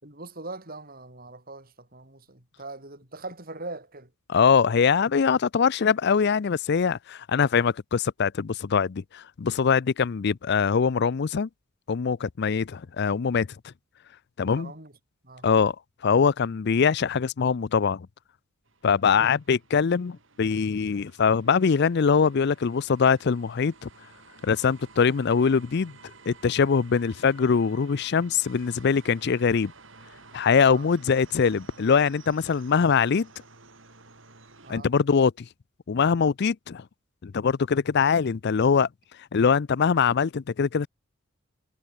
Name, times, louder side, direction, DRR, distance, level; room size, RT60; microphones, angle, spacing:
voice 1, 0.0-4.1 14.4-14.9 15.2-15.5 19.1-19.3 30.7-30.9 34.6-34.9, right 2 dB, 45° right, 6.0 m, -41 dB
voice 2, 4.3-11.5 11.9-13.5 14.4-14.7 15.4-15.8 16.0-18.1 18.8-23.9 24.4-25.9 26.3-29.7 30.3-33.3 34.7-35.3 35.9-36.8 37.2-38.9 39.3-40.9, left 6 dB, 55° left, 0.5 m, -23 dB
sound 1, 18.6-34.7, right 4 dB, 65° right, 6.5 m, -52 dB
head